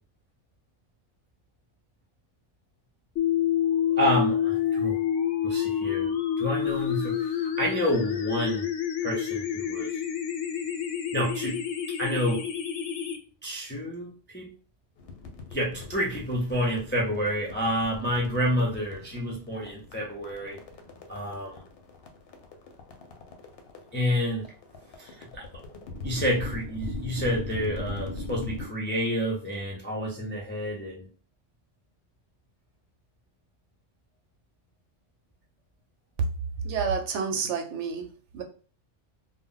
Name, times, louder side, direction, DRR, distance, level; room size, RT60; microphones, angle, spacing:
sound 1, 3.2-13.2, left 9 dB, 85° left, 0.9 m, -28 dB
voice 1, 4.0-5.0 5.4-6.1 6.4-8.7 9.0-10.0 11.1-11.6 12.0-12.4 13.4-14.5 15.5-20.6 21.1-21.7 23.9-24.5 25.0-25.5 26.0-31.1, equal, 20° left, -3 dB, 0.3 m, -29 dB
sound 2, 15.0-28.7, left 2 dB, 65° left, 0.7 m, -40 dB
voice 2, 36.6-38.4, right 5 dB, 75° right, 5 dB, 0.9 m, -30 dB
2.2 x 2.0 x 3.7 m, 0.39 s
omnidirectional pair, 1.2 m